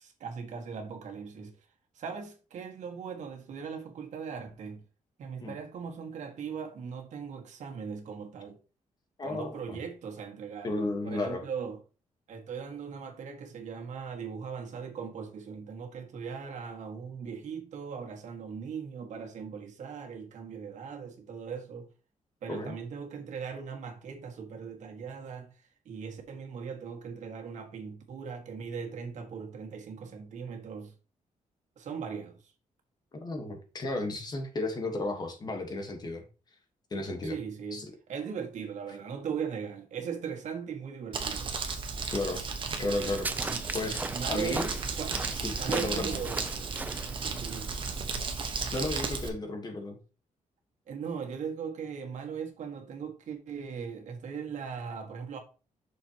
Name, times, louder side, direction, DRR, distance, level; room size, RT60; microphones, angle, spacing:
voice 1, 0.0-1.5 2.0-4.8 5.2-8.6 9.2-10.7 11.0-11.8 12.3-21.9 22.4-25.5 25.9-30.9 31.8-32.4 37.2-41.5 43.5-43.6 44.1-45.3 45.6-47.7 50.9-55.4, right 6 dB, 70° right, 1.8 m, -39 dB
voice 2, 9.2-9.8 10.6-11.4 22.5-22.7 33.2-36.3 36.9-37.4 37.7-37.9 42.1-42.4 42.8-44.7 45.4-46.2 48.7-50.0, left 2 dB, 30° left, 1.4 m, -34 dB
Crumpling crinkling, 41.1-49.3, right 4 dB, 40° right, 1.2 m, -34 dB
sound 1, 43.0-48.0, right 2 dB, 15° right, 0.5 m, -38 dB
7.6 x 6.5 x 2.9 m
wide cardioid pair, 165°, 13 cm